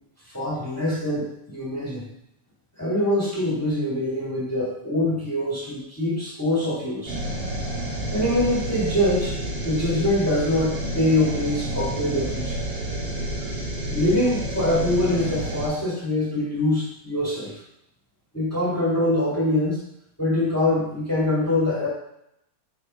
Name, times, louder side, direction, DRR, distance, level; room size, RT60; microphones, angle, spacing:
voice 1, 0.3-2.1 2.8-7.2 8.1-9.4 9.6-12.6 13.9-17.5 18.3-19.8 20.2-21.9, left 1 dB, 10° left, -6 dB, 0.9 m, -24 dB
sound 1, 7.1-15.7, right 1 dB, 50° right, 1.6 m, -29 dB
6.5 x 2.9 x 4.9 m, 0.78 s
omnidirectional pair, 3.5 m